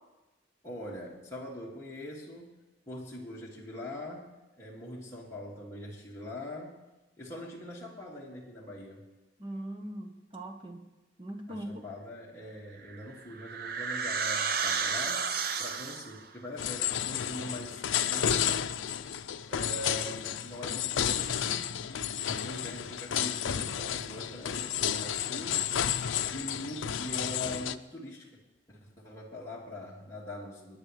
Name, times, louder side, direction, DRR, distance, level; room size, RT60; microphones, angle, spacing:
voice 1, 0.6-2.6 2.9-6.8 7.2-9.0 11.5-18.5 19.5-25.6 26.3-28.4 28.7-30.8, left 1 dB, 15° left, -5 dB, 2.2 m, -42 dB
voice 2, 9.4-10.8 11.2-11.8, right 1 dB, 25° right, 4 dB, 1.2 m, -40 dB
sound 1, 12.8-16.2, right 6 dB, 50° right, 0.7 m, -32 dB
sound 2, 16.6-27.8, left 9 dB, 90° left, 0.5 m, -32 dB
27.0 x 10.5 x 3.3 m, 1.1 s
head